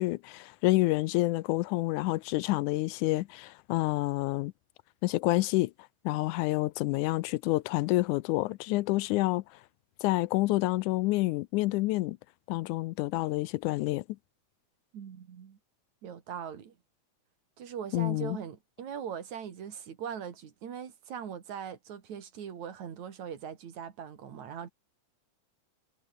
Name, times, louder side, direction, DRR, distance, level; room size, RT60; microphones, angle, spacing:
voice 1, 0.0-4.5 5.0-5.7 6.1-9.4 10.0-12.2 12.5-14.0 17.9-18.4, left 19 dB, 85° left, 2.1 m, -28 dB
voice 2, 14.9-15.6 16.0-16.8 17.6-24.7, right 8 dB, 70° right, 3.6 m, -40 dB
omnidirectional pair, 3.5 m